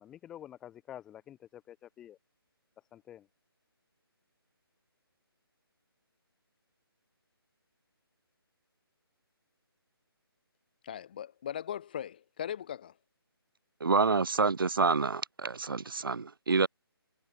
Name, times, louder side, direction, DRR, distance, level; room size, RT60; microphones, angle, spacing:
voice 1, 0.0-2.2 2.8-3.3, left 11 dB, 5° left, 1.0 m, -49 dB
voice 2, 10.8-12.9, left 9 dB, 20° left, 3.2 m, -39 dB
voice 3, 13.8-16.7, right 4 dB, 60° right, 1.3 m, -27 dB
hypercardioid pair, 175°, 13 cm